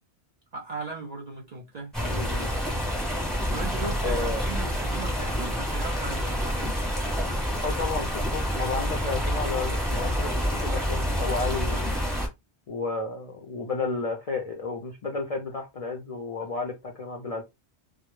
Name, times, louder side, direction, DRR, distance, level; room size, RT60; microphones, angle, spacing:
voice 1, 0.5-1.9 3.5-6.8, right 4 dB, 60° right, 0.4 m, -37 dB
sound 1, 1.9-12.3, equal, ahead, 0.7 m, -28 dB
voice 2, 2.1-2.5 4.0-4.5 7.6-11.9 12.7-17.4, left 4 dB, 65° left, 0.3 m, -32 dB
2.1 x 2.0 x 3.0 m
omnidirectional pair, 1.2 m